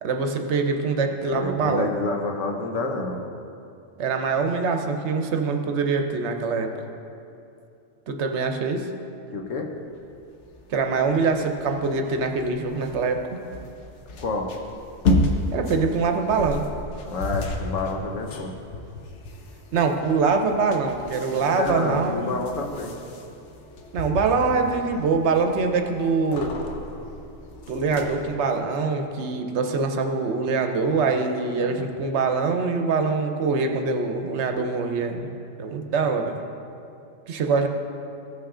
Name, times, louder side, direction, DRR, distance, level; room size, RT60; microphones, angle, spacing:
voice 1, 0.0-1.9 4.0-6.7 8.1-8.9 10.7-13.2 15.5-16.6 19.7-22.3 23.9-26.5 27.7-35.3 35.6-36.4 37.3-37.7, right 4 dB, 65° right, 5 dB, 1.0 m, -24 dB
voice 2, 1.3-3.2 9.3-9.7 14.2-14.5 17.0-18.5 21.3-23.0 31.6-31.8, left 3 dB, 90° left, 2 dB, 1.3 m, -29 dB
sound 1, 10.0-28.3, left 2 dB, 70° left, 1.1 m, -32 dB
15.0 x 5.7 x 3.7 m, 2.6 s
omnidirectional pair, 1.3 m